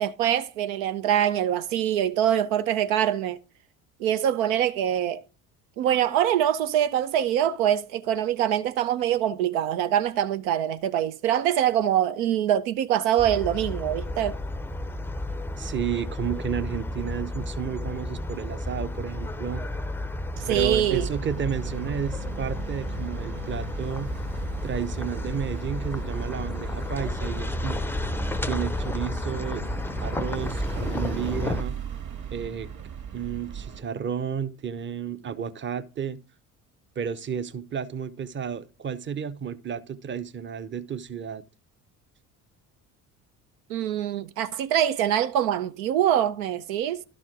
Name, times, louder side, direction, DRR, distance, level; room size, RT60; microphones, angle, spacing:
voice 1, 0.0-3.4 4.0-5.2 5.8-14.4 20.4-21.1 43.7-47.0, right 10 dB, 80° right, 0.7 m, -24 dB
sound 1, 13.2-31.6, left 1 dB, 5° left, 0.5 m, -32 dB
voice 2, 15.6-19.6 20.5-24.1 24.6-27.8 28.4-29.6 30.0-31.8 32.3-32.7 33.1-36.2 37.0-41.4, right 7 dB, 30° right, 0.8 m, -32 dB
sound 2, 20.4-33.8, right 7 dB, 45° right, 2.1 m, -37 dB
12.0 x 4.3 x 4.6 m
hypercardioid pair, 65°, 41 cm